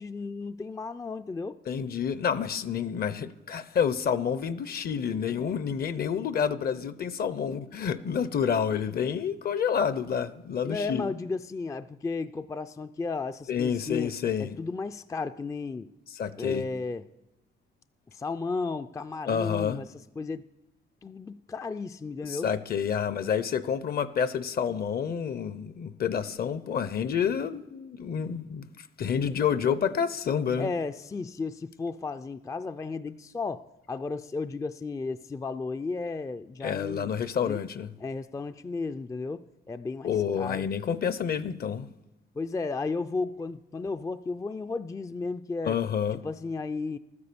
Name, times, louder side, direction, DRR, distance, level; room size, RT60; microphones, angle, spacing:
voice 1, 0.0-1.6 10.6-14.1 14.4-15.9 16.4-17.0 18.1-19.9 20.2-20.4 21.0-22.5 30.6-37.2 37.4-37.6 38.0-40.7 42.3-45.8 46.2-47.0, left 4 dB, 15° left, 0.4 m, -34 dB
voice 2, 1.7-11.0 13.5-14.6 16.1-16.6 19.3-19.8 22.2-30.7 36.6-37.9 40.0-41.9 45.6-46.2, left 7 dB, 50° left, 0.7 m, -29 dB
12.5 x 9.7 x 6.8 m
cardioid pair, 90°, 20 cm